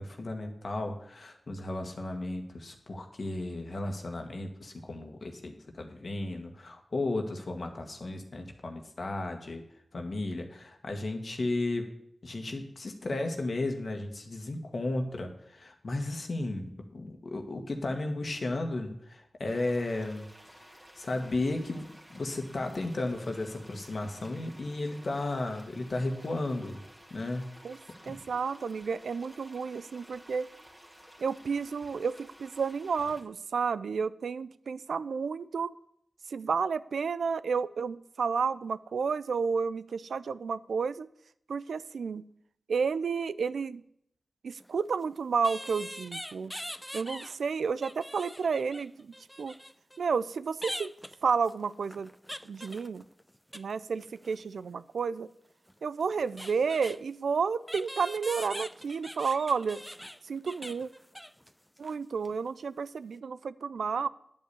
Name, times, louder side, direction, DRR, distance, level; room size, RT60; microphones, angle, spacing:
voice 1, 0.0-9.6 9.9-11.9 12.2-20.3 20.5-20.6 21.0-21.9 22.1-26.8 27.1-27.4 28.0-28.2, left 2 dB, 60° left, 4 dB, 1.6 m, -34 dB
sound 1, 19.4-33.2, equal, 15° right, 2.3 m, -54 dB
voice 2, 28.1-30.5 31.2-35.7 36.3-41.1 41.5-42.2 42.7-43.8 44.4-46.5 46.9-49.6 50.0-50.9 51.2-52.1 52.4-53.0 53.5-55.3 55.8-59.8 60.3-60.9 61.8-64.1, right 5 dB, 80° right, 17 dB, 0.4 m, -31 dB
sound 2, 44.6-44.7 45.4-47.4 47.7-50.0 50.6-53.7 54.0-54.4 55.7-55.8 56.0-57.0 57.7-61.5 61.8-62.0 62.2-62.4, equal, 5° left, 0.5 m, -43 dB
10.0 x 5.4 x 8.4 m, 0.73 s
cardioid pair, 45°, 0 cm